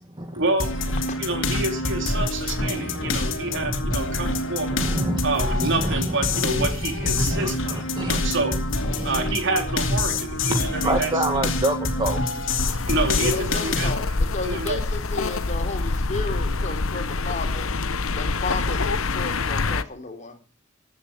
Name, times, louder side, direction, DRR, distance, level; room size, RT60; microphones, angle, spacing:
voice 1, 0.3-0.9 1.2-4.7 5.2-8.6 9.0-11.4 12.9-13.9 14.4-14.8, right 2 dB, 65° right, 5 dB, 3.7 m, -28 dB
sound 1, 0.6-13.9, left 2 dB, 65° left, 2.9 m, -26 dB
voice 2, 2.6-4.4 4.7-5.2 5.6-6.7 7.0-8.4 8.8-9.3 10.1-10.2 10.5-12.2, right 1 dB, 20° right, 4 dB, 1.9 m, -29 dB
sound 2, 12.6-19.8, left 3 dB, 85° left, 1.0 m, -26 dB
voice 3, 13.2-17.7 18.1-20.4, left 3 dB, 35° left, 5 dB, 3.7 m, -33 dB
16.0 x 10.5 x 7.5 m, 0.38 s
head